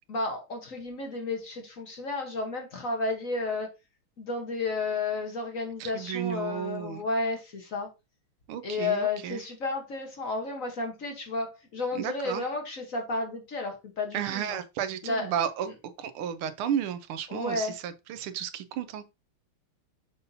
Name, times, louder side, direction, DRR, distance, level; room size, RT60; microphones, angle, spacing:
voice 1, 0.1-3.7 4.2-7.9 8.6-14.6 15.0-15.3 17.3-17.7, left 3 dB, 45° left, 1.3 m, -32 dB
voice 2, 5.8-7.0 8.5-9.4 11.9-12.4 14.1-19.1, right 9 dB, 85° right, 1.6 m, -33 dB
6.9 x 5.6 x 2.7 m
omnidirectional pair, 2.3 m